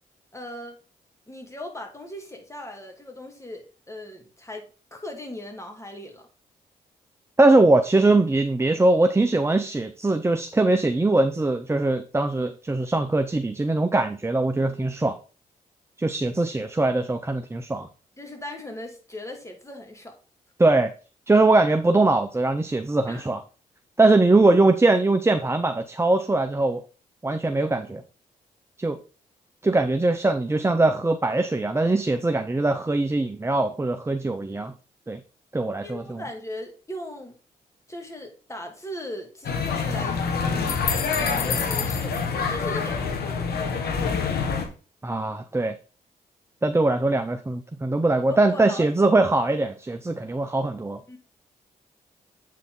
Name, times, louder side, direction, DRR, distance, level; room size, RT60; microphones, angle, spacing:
voice 1, 0.3-0.8 1.3-6.3 18.2-20.2 23.1-23.2 35.8-37.4 37.9-40.2 40.6-42.2 42.5-43.6 48.3-48.9 51.1-51.2, left 1 dB, 15° left, 2.5 m, -38 dB
voice 2, 7.4-15.2 16.0-17.9 20.6-20.9 21.3-23.4 24.0-26.8 27.2-28.0 28.8-29.0 29.6-34.7 35.1-35.2 35.5-36.2 45.0-45.8 46.6-51.0, right 2 dB, 15° right, 0.7 m, -21 dB
sound 1, 39.4-44.6, left 5 dB, 70° left, 1.5 m, -26 dB
8.1 x 4.6 x 3.9 m
supercardioid pair, 50°, 17 cm